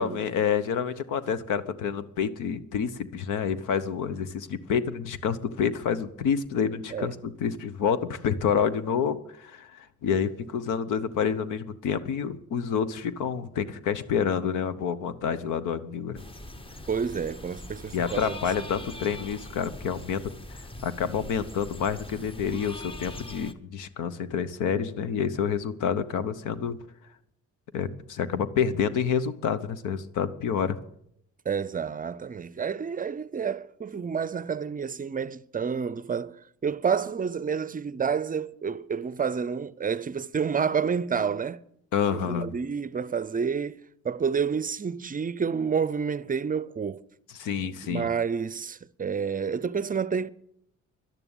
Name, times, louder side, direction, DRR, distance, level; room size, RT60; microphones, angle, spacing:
voice 1, 0.0-16.2 17.9-20.2 20.5-26.8 27.7-30.8 41.9-42.5 47.3-48.1, left 7 dB, 90° left, 1.0 m, -28 dB
sound 1, 16.1-23.5, left 1 dB, 20° left, 1.0 m, -42 dB
voice 2, 16.9-18.4 31.5-41.6 42.1-43.8 44.0-47.0 47.8-50.3, right 6 dB, 30° right, 0.5 m, -29 dB
11.5 x 11.0 x 8.9 m
cardioid pair, 90°, 30 cm